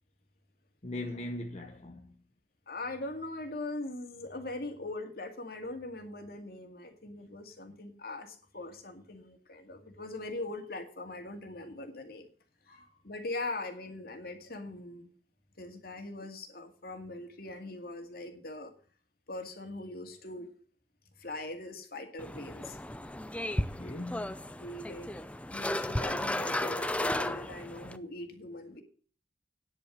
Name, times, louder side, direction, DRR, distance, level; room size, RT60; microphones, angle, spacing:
voice 1, 0.8-2.2 12.7-13.0 23.5-24.4, left 1 dB, 40° left, 1.0 m, -41 dB
voice 2, 2.7-12.3 12.7-12.8 13.0-15.1 15.6-18.7 19.3-20.5 21.2-22.8 24.6-25.1 25.5-28.8, left 2 dB, 60° left, 2.2 m, -41 dB
sound 1, 22.2-28.0, left 1 dB, 5° left, 0.5 m, -34 dB
9.8 x 8.6 x 6.4 m
head